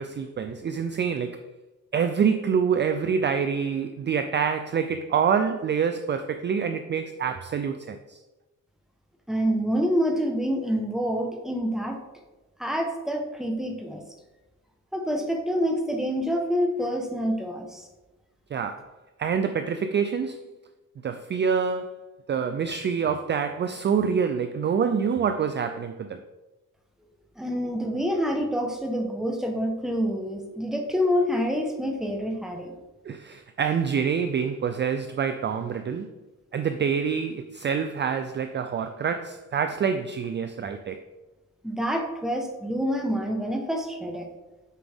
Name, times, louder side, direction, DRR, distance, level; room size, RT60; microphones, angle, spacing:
voice 1, 0.0-1.4 1.9-8.2 18.5-18.9 19.2-20.4 21.0-22.0 22.3-26.2 33.1-36.1 36.5-41.0, right 6 dB, 35° right, 0.4 m, -26 dB
voice 2, 9.3-12.0 12.6-14.0 14.9-17.9 27.4-32.7 41.6-44.3, equal, ahead, 1.1 m, -27 dB
8.1 x 6.1 x 3.5 m
cardioid pair, 135°, 33 cm